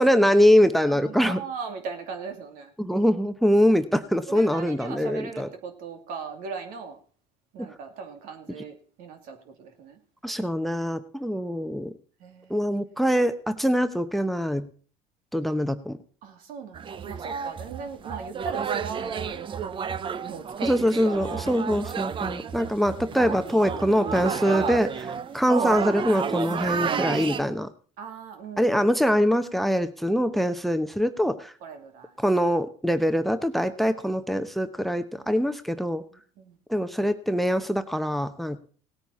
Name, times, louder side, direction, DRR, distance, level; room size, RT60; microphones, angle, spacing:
voice 1, 0.0-1.4 2.8-5.5 7.6-7.7 10.2-11.9 12.5-14.7 15.3-16.0 20.6-27.7 28.6-31.5 32.2-36.0 36.7-38.6, equal, ahead, 12 dB, 0.8 m, -23 dB
voice 2, 0.9-2.7 4.3-7.0 7.5-10.0 12.2-12.6 16.2-19.4 20.2-20.7 21.0-21.7 22.2-22.9 28.0-28.9 29.2-29.3 31.6-32.2 35.2-35.3 36.1-36.6, right 5 dB, 70° right, 6 dB, 2.4 m, -39 dB
sound 1, 16.7-27.4, right 7 dB, 35° right, 0.7 m, -31 dB
17.5 x 9.0 x 4.2 m, 0.43 s
supercardioid pair, 90°, 15 cm